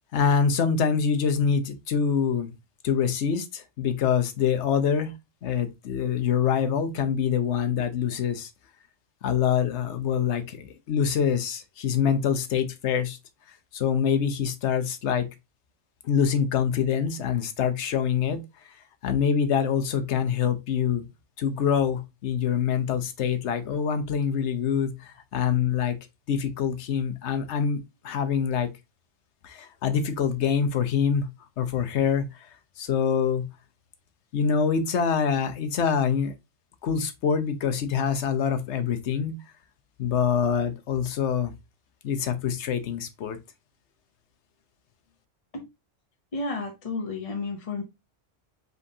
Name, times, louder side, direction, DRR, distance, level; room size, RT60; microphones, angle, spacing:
voice 1, 0.1-2.5 2.8-5.1 5.4-8.5 9.2-13.2 13.7-15.3 16.0-18.4 19.0-21.0 21.4-26.0 26.3-27.8 28.0-28.7 29.4-31.3 31.6-32.5 32.8-33.4 34.3-36.3 36.8-39.3 40.0-41.5 42.0-43.4, left 7 dB, 70° left, 1.0 m, -25 dB
voice 2, 46.3-47.8, left 3 dB, 35° left, 0.7 m, -32 dB
5.3 x 3.5 x 2.6 m
omnidirectional pair, 1.3 m